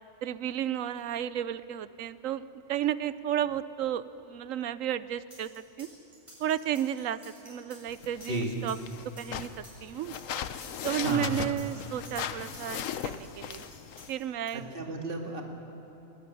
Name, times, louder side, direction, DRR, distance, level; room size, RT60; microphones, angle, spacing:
voice 1, 0.2-5.9 6.4-8.8 9.2-10.1 10.8-13.6 14.1-14.7, right 10 dB, 75° right, 15 dB, 1.1 m, -33 dB
sound 1, 5.3-14.5, equal, 25° right, 7.7 m, -52 dB
sound 2, 7.9-14.1, left 9 dB, 75° left, 1.2 m, -38 dB
voice 2, 11.0-11.5 14.5-15.4, right 2 dB, 40° right, 1 dB, 2.3 m, -33 dB
20.5 x 19.5 x 9.9 m, 3.0 s
omnidirectional pair, 1.4 m